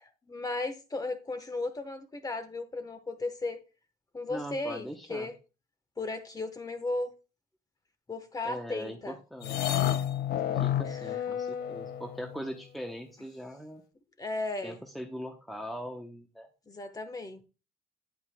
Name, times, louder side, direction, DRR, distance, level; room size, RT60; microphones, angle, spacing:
voice 1, 0.0-3.6 4.1-5.3 6.0-7.1 8.1-9.2 10.5-10.6 10.8-11.2 14.2-14.8 16.7-17.4, left 2 dB, 20° left, 1.1 m, -35 dB
voice 2, 4.3-5.3 8.4-9.9 10.5-13.8 14.6-16.5, equal, ahead, 0.8 m, -41 dB
sound 1, 9.4-12.5, left 10 dB, 65° left, 0.6 m, -30 dB
9.3 x 7.9 x 2.2 m
cardioid pair, 110°, 17 cm